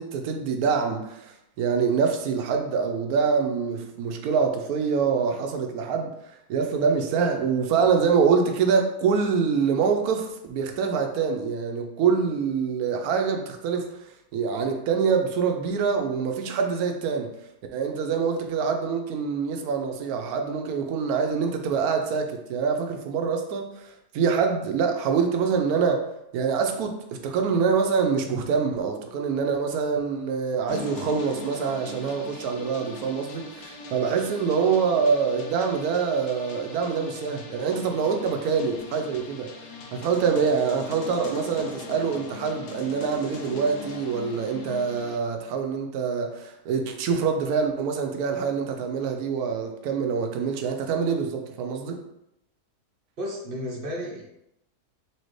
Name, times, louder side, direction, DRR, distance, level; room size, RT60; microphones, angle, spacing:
voice 1, 0.0-6.1 6.5-13.9 14.3-17.3 17.7-23.7 24.1-26.1 26.3-39.5 39.9-52.0, right 6 dB, 75° right, 4 dB, 1.0 m, -25 dB
sound 1, 30.7-45.2, left 3 dB, 75° left, 1.2 m, -40 dB
voice 2, 53.2-54.2, equal, 45° right, -2 dB, 0.8 m, -33 dB
4.3 x 2.8 x 3.1 m, 0.81 s
omnidirectional pair, 1.7 m